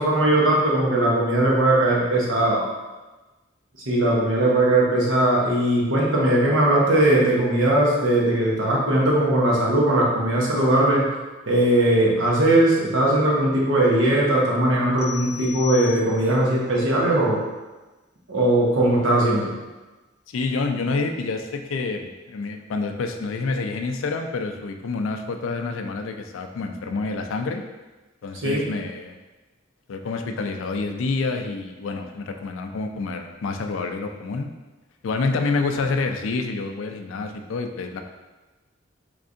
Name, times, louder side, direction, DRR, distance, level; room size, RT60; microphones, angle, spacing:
voice 1, 0.0-2.7 3.9-11.0 11.5-17.4 18.3-19.5 28.4-28.6, right 1 dB, 80° right, -4 dB, 1.0 m, -19 dB
sound 1, 15.0-16.5, left 10 dB, 5° right, 0.5 m, -37 dB
voice 2, 20.3-27.6 28.2-29.2 29.9-34.5 35.0-38.0, left 3 dB, 90° left, 5 dB, 0.4 m, -28 dB
3.6 x 3.2 x 2.6 m, 1.2 s
head